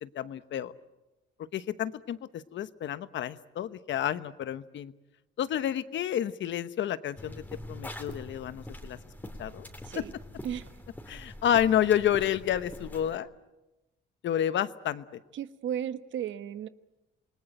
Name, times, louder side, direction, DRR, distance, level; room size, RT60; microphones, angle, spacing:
voice 1, 0.0-0.7 1.5-4.9 5.4-9.0 9.4-9.7 9.9-10.0 11.1-13.3 14.2-15.2, left 10 dB, 70° left, 13 dB, 1.1 m, -30 dB
sound 1, 7.2-13.2, left 1 dB, 10° left, 3.0 m, -44 dB
voice 2, 15.3-16.7, right 9 dB, 70° right, 12 dB, 1.2 m, -34 dB
28.0 x 20.0 x 9.0 m, 1.0 s
cardioid pair, 90°, 20 cm